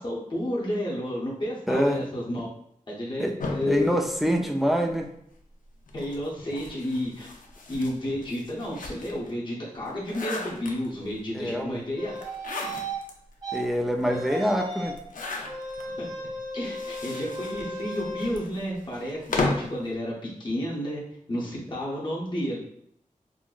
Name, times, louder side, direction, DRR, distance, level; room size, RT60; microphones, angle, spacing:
voice 1, 0.0-2.5 2.9-4.0 5.9-7.3 7.7-12.1 16.0-16.1 16.5-20.1 20.4-21.0 21.3-22.6, left 1 dB, 35° left, -6 dB, 0.8 m, -31 dB
voice 2, 1.7-2.0 3.2-3.3 3.7-5.1 11.3-11.8 13.5-15.0, equal, ahead, 2 dB, 0.4 m, -25 dB
sound 1, 3.4-5.0 5.9-9.3 9.7-11.2 12.2-13.1 13.6-13.7 13.9-14.0 14.9-15.9 16.6-19.8, left 3 dB, 80° left, 0.5 m, -35 dB
sound 2, 12.0-13.0 13.4-13.6 14.0-15.0 15.4-18.3, right 1 dB, 30° right, 0.7 m, -35 dB
3.8 x 2.0 x 2.4 m, 0.71 s
wide cardioid pair, 95°, 14 cm